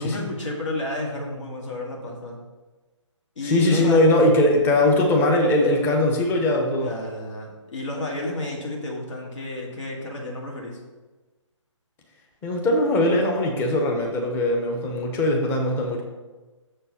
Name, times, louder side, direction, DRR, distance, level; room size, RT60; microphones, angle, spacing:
voice 1, 0.0-2.4 3.4-4.2 6.8-10.8, left 1 dB, 70° left, -1 dB, 2.1 m, -31 dB
voice 2, 3.4-6.9 12.4-16.0, left 1 dB, 15° left, 1 dB, 0.8 m, -20 dB
6.8 x 4.5 x 5.7 m, 1.2 s
figure-of-eight pair, 145°, 16 cm